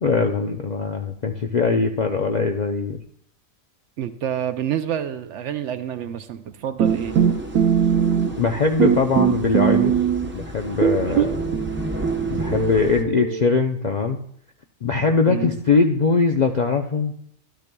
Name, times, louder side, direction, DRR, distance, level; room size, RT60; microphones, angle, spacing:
voice 1, 0.0-3.0 8.4-9.9 10.3-11.6 12.3-14.2 14.8-17.1, left 4 dB, 55° left, 3 dB, 0.5 m, -21 dB
voice 2, 4.0-7.2 11.1-11.2 15.3-15.5, right 9 dB, 70° right, 10 dB, 0.8 m, -28 dB
sound 1, 6.8-13.0, right 1 dB, 10° right, 0.6 m, -32 dB
sound 2, 6.8-8.5 8.8-10.4 10.8-13.5, right 8 dB, 90° right, 1.1 m, -21 dB
12.5 x 12.0 x 2.3 m, 0.66 s
omnidirectional pair, 1.4 m